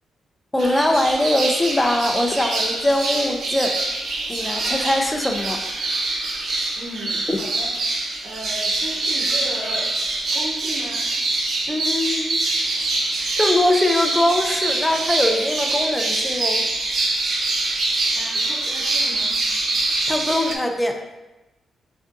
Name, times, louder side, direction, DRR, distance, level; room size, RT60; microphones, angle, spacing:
voice 1, 0.5-3.8 4.3-5.6 7.3-7.4 11.7-12.4 13.4-16.6 20.1-21.0, left 1 dB, 10° left, 4 dB, 0.4 m, -22 dB
sound 1, 0.6-20.5, right 2 dB, 65° right, 0.6 m, -24 dB
voice 2, 6.7-7.7 8.2-10.0 10.3-11.0 18.1-19.4, right 1 dB, 90° right, -8 dB, 1.1 m, -35 dB
5.9 x 2.5 x 2.6 m, 1.0 s
cardioid pair, 90°, 0 cm